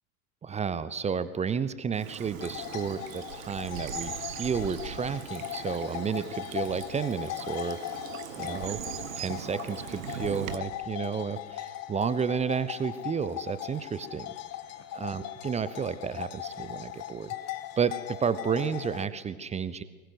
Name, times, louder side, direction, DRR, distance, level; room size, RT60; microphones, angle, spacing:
voice 1, 0.4-7.8 8.4-8.8 9.2-14.3 14.9-17.3 17.8-19.8, right 6 dB, 15° right, 16 dB, 0.9 m, -31 dB
Bird vocalization bird call bird song / Stream, 1.9-10.6, right 10 dB, 60° right, 1.8 m, -40 dB
sound 1, 2.4-19.1, left 12 dB, 35° left, 1.7 m, -39 dB
24.5 x 20.5 x 8.2 m, 1.3 s
figure-of-eight pair, 85°, 44 cm